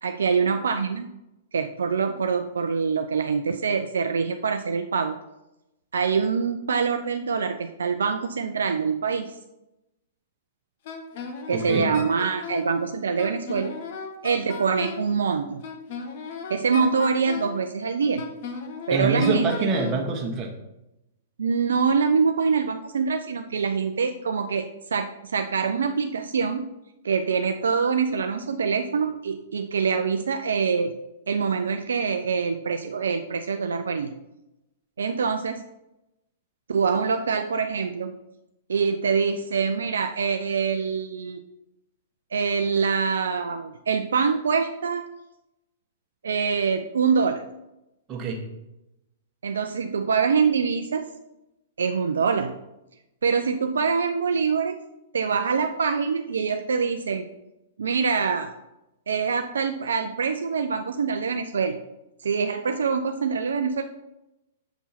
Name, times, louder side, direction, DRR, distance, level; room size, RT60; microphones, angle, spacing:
voice 1, 0.0-1.1 1.5-5.2 5.9-9.4 11.5-13.8 14.2-15.6 16.5-18.2 18.9-19.7 21.4-26.7 27.0-30.9 31.3-34.2 35.0-35.6 36.7-38.1 38.7-41.4 42.3-45.0 46.2-47.4 49.4-51.1 51.8-52.6 53.2-54.8 55.1-57.3 57.8-58.5 59.1-61.8 62.2-63.8, right 5 dB, 65° right, 7 dB, 0.4 m, -25 dB
Wind instrument woodwind instrument, 10.8-12.7 13.2-15.1 15.6-17.6 18.2-20.0, left 6 dB, 50° left, 1.0 m, -36 dB
voice 2, 11.5-11.9 18.9-20.5 48.1-48.4, right 3 dB, 25° right, 1 dB, 1.4 m, -25 dB
7.0 x 5.3 x 4.3 m, 0.92 s
figure-of-eight pair, 105°, 0 cm